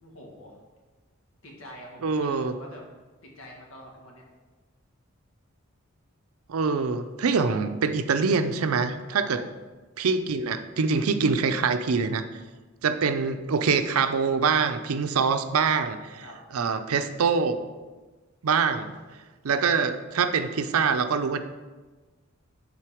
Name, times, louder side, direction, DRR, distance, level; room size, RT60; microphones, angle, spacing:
voice 1, 0.0-0.6 1.4-2.8 3.2-4.2 9.2-9.4 16.2-16.4, equal, 70° left, -1 dB, 1.6 m, -45 dB
voice 2, 2.0-2.5 6.5-9.4 10.0-12.2 12.8-16.2 16.5-17.6 18.4-18.9 19.4-21.4, right 5 dB, 85° right, 9 dB, 0.5 m, -24 dB
7.5 x 3.9 x 5.0 m, 1.3 s
head